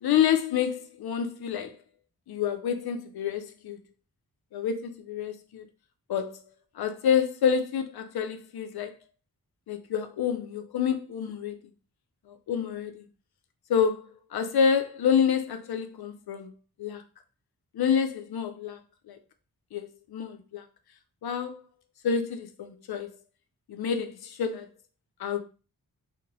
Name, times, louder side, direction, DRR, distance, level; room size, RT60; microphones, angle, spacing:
voice 1, 0.0-1.7 2.3-3.8 4.5-5.6 6.1-6.4 6.8-8.9 9.7-11.6 12.5-13.1 13.7-14.0 14.3-16.5 16.8-17.0 17.7-18.8 19.1-19.2 19.7-20.6 21.2-21.6 22.0-23.1 23.7-24.7 25.2-25.4, left 7 dB, 75° left, 0.5 m, -28 dB
2.8 x 2.0 x 2.6 m
cardioid pair, 55°, 38 cm